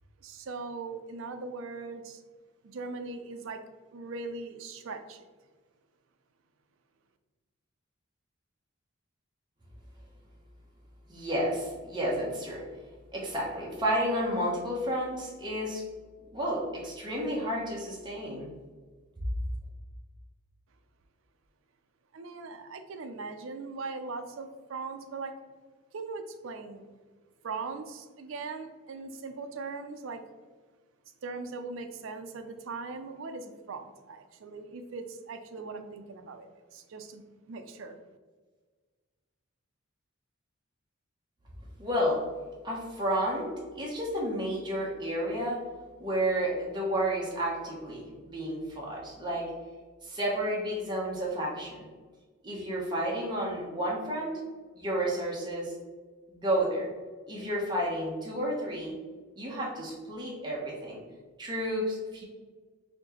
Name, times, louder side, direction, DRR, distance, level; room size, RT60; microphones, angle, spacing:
voice 1, 0.2-2.2 2.6-3.6 3.9-5.2 22.1-25.3 25.9-26.8 27.4-30.3 31.2-37.2 37.5-38.0, right 4 dB, 65° right, 7 dB, 0.4 m, -40 dB
voice 2, 11.1-12.6 13.1-15.8 16.3-18.5 41.8-42.2 42.6-45.6 46.0-49.5 50.0-51.9 52.4-54.3 54.7-55.7 56.3-56.9 57.3-58.9 59.4-61.0 61.4-62.2, equal, 20° right, -4 dB, 0.8 m, -31 dB
4.3 x 2.8 x 2.9 m, 1.4 s
head